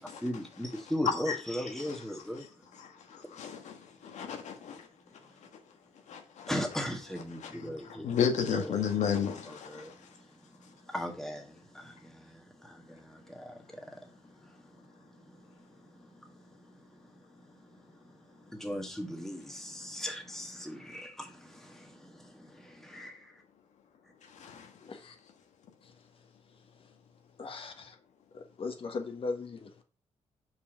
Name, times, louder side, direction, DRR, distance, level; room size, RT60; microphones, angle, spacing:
voice 1, 0.0-2.8 5.3-5.5 6.5-8.9 9.4-23.4, equal, 5° left, 1.7 m, -40 dB
voice 2, 3.1-3.7 4.0-4.9 6.1-6.5 7.4-7.5 8.0-9.9 24.4-24.7, left 7 dB, 85° left, 1.3 m, -32 dB
voice 3, 24.8-25.1 27.4-27.9 28.3-29.8, left 4 dB, 50° left, 1.3 m, -38 dB
5.5 x 4.9 x 5.0 m
cardioid pair, 100°, 12 cm